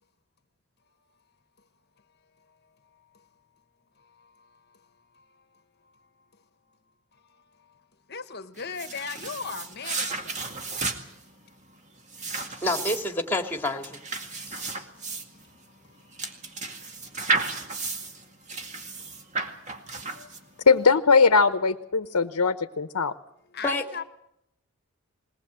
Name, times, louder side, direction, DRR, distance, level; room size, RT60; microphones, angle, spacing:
voice 1, 2.9-3.3 4.0-4.9 5.1-5.4 5.8-6.1 7.1-7.8 8.1-10.4 10.7-11.2 12.1-12.6 14.2-16.1 16.4-19.3 19.6-20.7 23.5-24.0, left 5 dB, 45° left, 1.2 m, -43 dB
sound 1, 8.6-20.7, right 3 dB, 30° right, 2.1 m, -33 dB
voice 2, 12.5-14.0 14.5-14.9 23.6-24.0, left 1 dB, 10° left, 2.3 m, -29 dB
voice 3, 20.7-23.1, left 4 dB, 85° left, 1.0 m, -20 dB
21.0 x 19.5 x 7.6 m
head